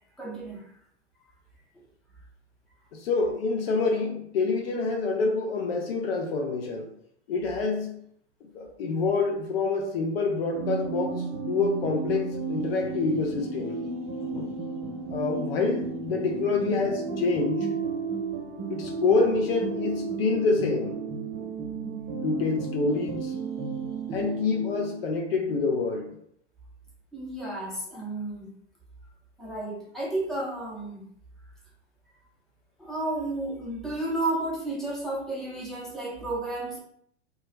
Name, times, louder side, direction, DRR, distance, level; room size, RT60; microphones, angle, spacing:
voice 1, 0.2-0.7 27.1-28.5 29.4-31.1 32.8-36.8, right 2 dB, ahead, 0.6 m, -32 dB
voice 2, 2.9-6.9 7.3-8.0 8.5-13.8 14.2-14.6 15.1-17.7 18.7-21.0 22.2-23.3 24.1-26.2, left 4 dB, 60° left, 0.6 m, -27 dB
sound 1, 10.5-25.2, right 4 dB, 35° right, 0.8 m, -33 dB
2.3 x 2.2 x 3.1 m
hypercardioid pair, 105°, 34 cm